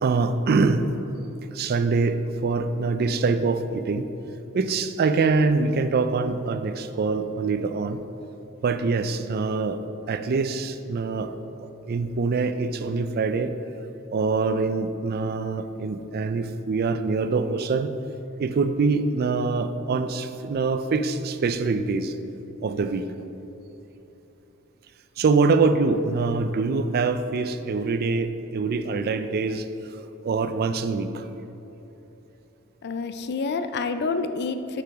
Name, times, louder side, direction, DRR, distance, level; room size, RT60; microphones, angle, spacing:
voice 1, 0.0-0.9 1.5-4.1 4.5-8.0 8.6-11.3 11.6-13.5 14.1-18.0 18.4-22.2 22.6-23.1 25.2-29.7 30.2-31.3, right 4 dB, 45° right, 10 dB, 0.4 m, -24 dB
voice 2, 32.8-34.8, left 4 dB, 50° left, 9 dB, 0.4 m, -28 dB
8.7 x 4.9 x 4.7 m, 2.9 s
head